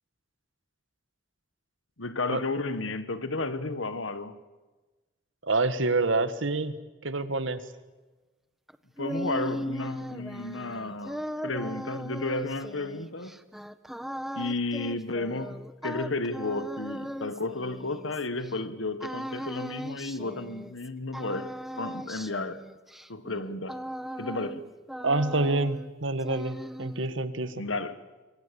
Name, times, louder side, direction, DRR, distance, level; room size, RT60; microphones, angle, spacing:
voice 1, 2.0-4.4 9.0-13.4 14.3-22.7 23.1-23.8 24.2-24.7 27.6-28.0, left 2 dB, 80° left, 1.6 m, -33 dB
voice 2, 5.4-6.7 7.0-7.6 25.0-27.6, right 2 dB, 75° right, 1.6 m, -27 dB
sound 1, 8.7-18.5 19.0-20.9 21.1-24.6 24.9-25.9 26.2-27.2, equal, ahead, 0.7 m, -38 dB
27.0 x 23.5 x 7.1 m
head